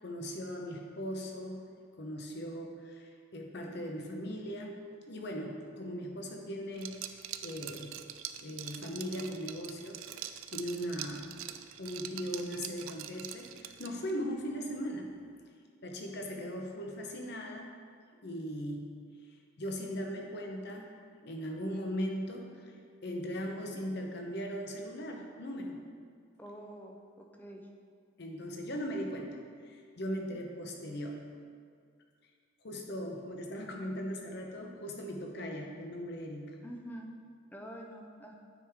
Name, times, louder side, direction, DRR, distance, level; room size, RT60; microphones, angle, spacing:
voice 1, 0.0-1.6 2.0-4.8 5.1-8.0 8.4-11.3 11.8-15.1 15.8-17.7 18.2-18.9 19.6-20.9 21.2-22.7 23.0-25.8 28.2-31.3 32.6-36.6, equal, 55° left, 1 dB, 0.9 m, -39 dB
Liquid, 6.8-14.2, right 11 dB, 85° right, 0.4 m, -44 dB
voice 2, 26.4-27.7 30.3-30.4 36.6-37.1 37.5-38.3, equal, 10° left, 1 dB, 0.6 m, -46 dB
9.1 x 4.8 x 3.6 m, 2.1 s
head